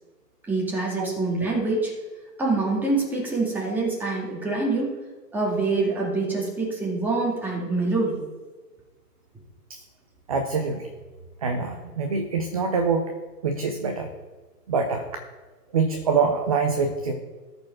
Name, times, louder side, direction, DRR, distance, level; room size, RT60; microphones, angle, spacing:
voice 1, 0.5-1.9 2.4-5.0 5.3-8.2, right 3 dB, 5° right, -5 dB, 2.4 m, -25 dB
voice 2, 10.3-10.9 11.4-13.1 13.4-14.1 14.7-15.0 15.7-17.1, right 5 dB, 25° right, 6 dB, 0.5 m, -25 dB
13.5 x 5.2 x 5.8 m, 1.3 s
figure-of-eight pair, 135°, 48 cm